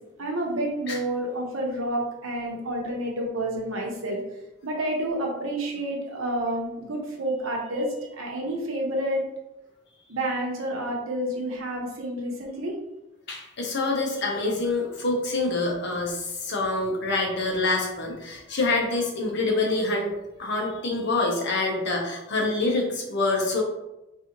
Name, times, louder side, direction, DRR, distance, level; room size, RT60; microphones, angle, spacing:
voice 1, 0.2-4.2 4.6-9.2 10.1-12.7, right 1 dB, 85° right, 0 dB, 0.9 m, -29 dB
voice 2, 13.3-20.1 20.4-23.6, left 2 dB, 55° left, 0 dB, 0.8 m, -26 dB
4.0 x 2.6 x 2.9 m, 0.95 s
head